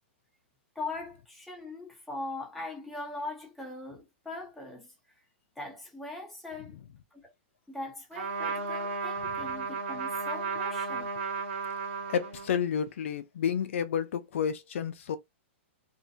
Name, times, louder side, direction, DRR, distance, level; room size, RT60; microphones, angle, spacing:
voice 1, 0.7-4.9 5.6-6.8 7.2-7.3 7.7-11.1, left 2 dB, ahead, 0.8 m, -40 dB
Trumpet, 8.1-12.7, right 4 dB, 75° right, 1.0 m, -34 dB
voice 2, 12.1-15.2, left 7 dB, 75° left, 0.4 m, -30 dB
2.5 x 2.1 x 2.7 m
hypercardioid pair, 160°, 7 cm